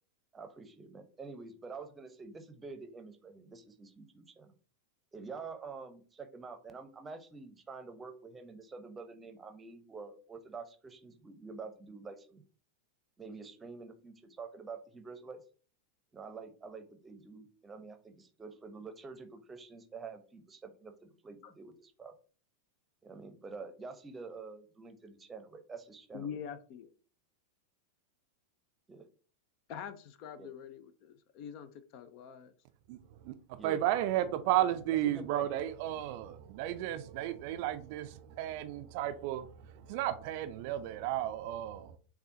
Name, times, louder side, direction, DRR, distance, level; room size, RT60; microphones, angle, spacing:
voice 1, 0.3-4.5 5.1-12.4 13.2-15.4 16.1-22.1 23.0-26.4 28.9-29.1 30.4-30.5 33.6-33.9 34.9-35.5 36.2-36.3, right 4 dB, 15° right, 0.8 m, -47 dB
voice 2, 26.1-26.9 29.7-32.5, left 8 dB, 45° left, 0.5 m, -45 dB
voice 3, 33.2-39.5 39.9-42.0, right 12 dB, 50° right, 0.4 m, -33 dB
6.7 x 2.3 x 2.7 m
figure-of-eight pair, 90°, 0 cm